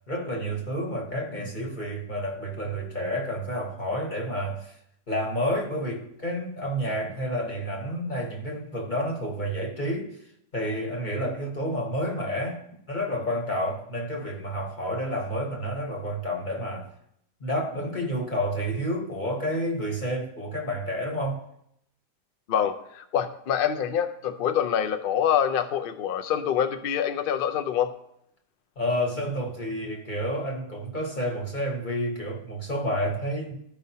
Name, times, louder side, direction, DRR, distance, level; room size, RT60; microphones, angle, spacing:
voice 1, 0.1-4.8 5.1-10.2 10.5-12.6 12.9-16.9 17.4-21.4 28.8-33.5, equal, 30° left, 1.1 m, -30 dB
voice 2, 22.5-27.9, left 9 dB, 75° left, 0.5 m, -26 dB
14.0 x 5.2 x 2.8 m
omnidirectional pair, 1.8 m